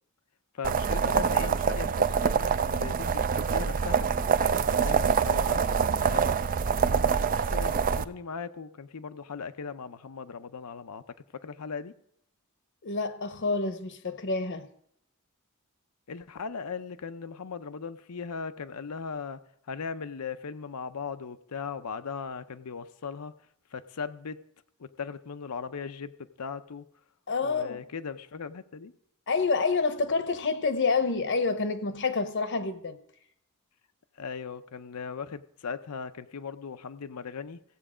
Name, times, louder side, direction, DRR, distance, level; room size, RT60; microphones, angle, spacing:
voice 1, 0.5-11.9 16.1-19.4 19.7-23.3 23.7-24.4 24.8-26.9 27.4-28.9 34.1-37.6, left 5 dB, 85° left, 0.6 m, -38 dB
sound 1, 0.6-8.0, right 6 dB, 40° right, 0.4 m, -25 dB
voice 2, 12.8-14.7 27.3-27.8 29.3-33.0, left 4 dB, 55° left, 0.8 m, -28 dB
16.0 x 8.0 x 5.0 m
head